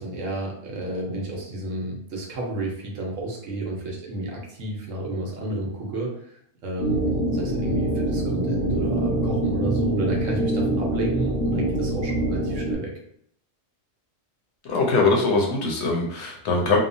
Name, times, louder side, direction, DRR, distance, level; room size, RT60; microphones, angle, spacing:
voice 1, 0.0-12.9, right 1 dB, 80° right, -1 dB, 1.1 m, -31 dB
sound 1, 6.8-12.7, right 1 dB, 25° left, 0.7 m, -24 dB
voice 2, 14.6-16.8, left 3 dB, 65° left, -1 dB, 0.9 m, -22 dB
2.9 x 2.1 x 2.6 m, 0.68 s
omnidirectional pair, 1.3 m